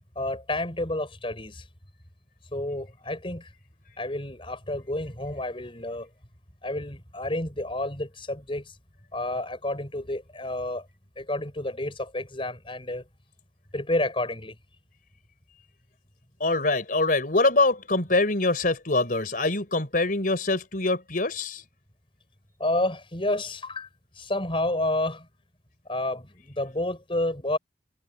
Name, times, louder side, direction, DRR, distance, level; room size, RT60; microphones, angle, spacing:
voice 1, 0.2-1.7 2.5-3.5 4.0-6.1 6.6-8.8 9.1-10.9 11.2-13.0 13.7-14.6 22.6-23.9 24.2-25.3 25.9-27.6, left 1 dB, 30° left, 5.9 m, -30 dB
voice 2, 16.4-21.6, left 2 dB, 50° left, 4.2 m, -24 dB
head